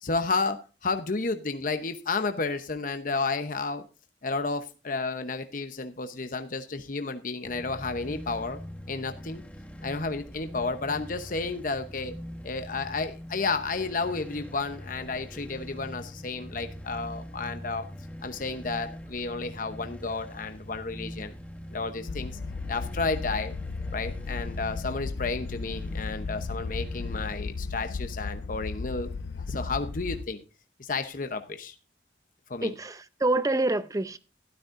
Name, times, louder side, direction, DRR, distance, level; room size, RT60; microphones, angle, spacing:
voice 1, 0.0-3.8 4.2-8.6 8.9-9.4 9.8-12.1 12.4-17.9 18.2-21.3 21.7-22.4 22.7-23.5 23.9-29.1 29.4-30.4 30.8-31.8 32.5-32.7, left 3 dB, 45° left, 0.8 m, -32 dB
sound 1, 7.4-27.4, equal, 5° left, 1.2 m, -43 dB
sound 2, 22.1-30.3, left 4 dB, 65° left, 0.4 m, -35 dB
voice 2, 32.6-34.2, right 2 dB, 20° right, 0.6 m, -27 dB
12.5 x 12.5 x 2.5 m
head